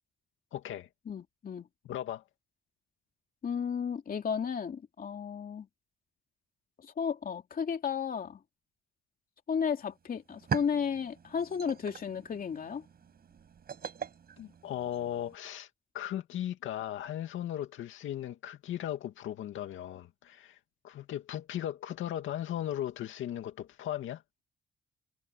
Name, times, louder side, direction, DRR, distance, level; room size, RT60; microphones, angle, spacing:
voice 1, 0.5-0.9 1.8-2.2 14.4-15.7 15.9-20.6 20.8-24.2, left 11 dB, 80° left, 2.3 m, -37 dB
voice 2, 1.1-1.7 3.4-5.7 7.0-8.4 9.5-12.8, left 7 dB, 45° left, 2.8 m, -33 dB
sound 1, 9.8-9.9 10.2-15.4, right 7 dB, 50° right, 5.8 m, -41 dB
cardioid pair, 90°, 20 cm